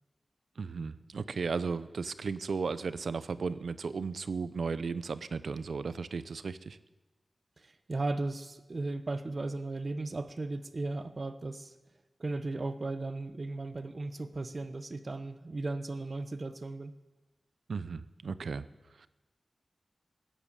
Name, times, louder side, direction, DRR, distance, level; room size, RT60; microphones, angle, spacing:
voice 1, 0.6-6.8 17.7-18.7 19.0-19.1, right 5 dB, 90° right, 14 dB, 0.6 m, -35 dB
voice 2, 7.6-11.7 12.2-16.9, right 2 dB, 50° right, 11 dB, 0.9 m, -36 dB
17.0 x 10.0 x 6.8 m, 1.1 s
wide cardioid pair, 85°, 0 cm